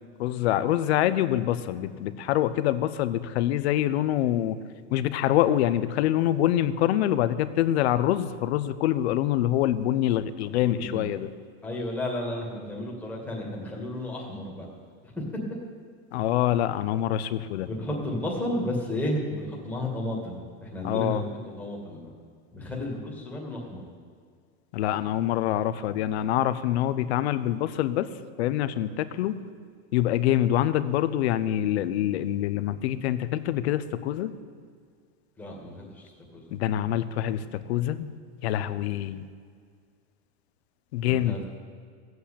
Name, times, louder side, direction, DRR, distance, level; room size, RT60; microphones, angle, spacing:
voice 1, 0.2-4.6 4.9-11.3 16.1-17.7 20.8-21.2 24.7-28.1 28.4-29.4 29.9-34.3 36.5-38.1 38.4-39.3 40.9-41.4, left 12 dB, 65° left, 13 dB, 0.9 m, -25 dB
voice 2, 10.5-11.1 11.6-14.7 15.0-15.2 17.7-22.1 22.5-23.8 35.4-36.6 41.0-41.4, left 1 dB, 5° left, -3 dB, 2.3 m, -33 dB
16.0 x 8.0 x 8.6 m, 2.1 s
supercardioid pair, 165°, 35 cm